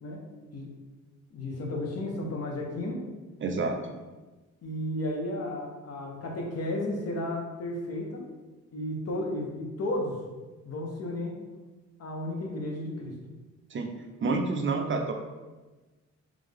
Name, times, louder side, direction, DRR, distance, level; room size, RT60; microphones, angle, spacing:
voice 1, 1.3-3.0 4.6-8.2 8.7-10.3 10.6-11.3 12.0-13.2, left 1 dB, 55° left, 0 dB, 1.1 m, -33 dB
voice 2, 3.4-3.8 13.7-13.9 14.2-15.1, right 3 dB, 40° right, 3 dB, 0.6 m, -28 dB
3.6 x 3.5 x 3.5 m, 1.2 s
cardioid pair, 90°, 30 cm